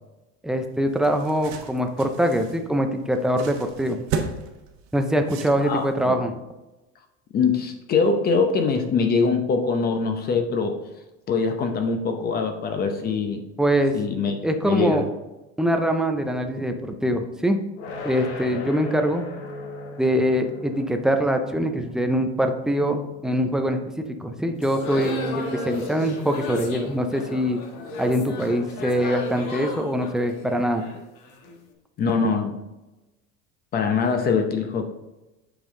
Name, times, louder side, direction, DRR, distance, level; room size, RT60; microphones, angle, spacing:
voice 1, 0.4-4.0 4.9-6.3 13.6-14.0 14.4-15.1 15.6-17.6 18.0-19.3 20.0-27.6 28.0-30.8, equal, ahead, 5 dB, 0.4 m, -23 dB
sound 1, 0.6-6.0, right 5 dB, 55° right, 1.2 m, -35 dB
voice 2, 5.6-6.2 7.3-10.8 11.3-13.4 13.9-14.4 14.7-15.0 32.0-32.6 33.7-34.9, left 5 dB, 30° left, 5 dB, 0.7 m, -23 dB
sound 2, 17.8-28.7, left 2 dB, 80° left, 1.6 m, -41 dB
sound 3, 24.6-31.6, left 3 dB, 60° left, 1.5 m, -34 dB
8.1 x 5.4 x 3.7 m, 1.0 s
cardioid pair, 160°, 33 cm